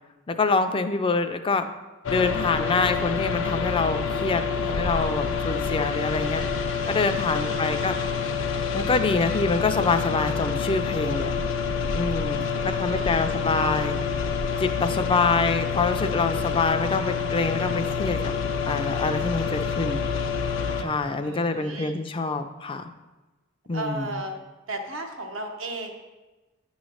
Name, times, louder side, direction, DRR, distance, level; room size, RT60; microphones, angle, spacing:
voice 1, 0.3-1.7 2.1-6.4 6.9-8.0 8.7-11.3 11.9-13.9 14.6-18.2 18.7-20.0 20.8-22.9 23.7-24.2, left 3 dB, 25° left, 8 dB, 0.4 m, -26 dB
sound 1, 2.0-20.8, left 5 dB, 70° left, 0.6 m, -27 dB
voice 2, 7.4-8.1 12.4-13.3 21.2-22.0 23.7-24.3 24.7-25.9, right 1 dB, 85° right, 3 dB, 1.0 m, -35 dB
9.3 x 3.1 x 6.3 m, 1.2 s
head